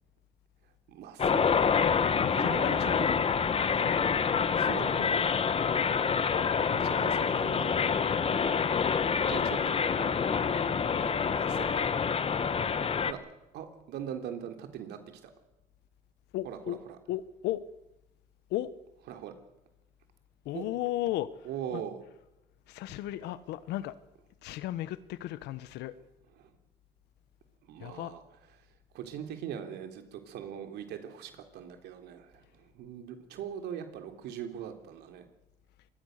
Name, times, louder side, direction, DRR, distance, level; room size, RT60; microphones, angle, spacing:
voice 1, 0.9-1.7 2.3-3.2 3.5-3.6 4.6-5.1 6.6-7.8 8.1-8.2 9.3-9.8 11.0-11.9 13.0-13.2 13.5-15.3 16.4-17.0 19.1-19.3 20.5-20.6 21.4-22.0 26.4-26.5 27.6-28.2 28.9-35.2, right 9 dB, 80° right, 3.4 m, -41 dB
sound 1, 1.2-13.1, left 6 dB, 35° left, 1.3 m, -27 dB
voice 2, 2.2-3.1 3.8-4.2 4.7-5.2 16.3-16.8 17.1-17.6 18.5-18.7 20.4-21.3 22.7-23.9 24.4-25.9 27.8-28.1, left 14 dB, 85° left, 1.3 m, -35 dB
25.0 x 21.0 x 6.7 m
cardioid pair, 110°, 17 cm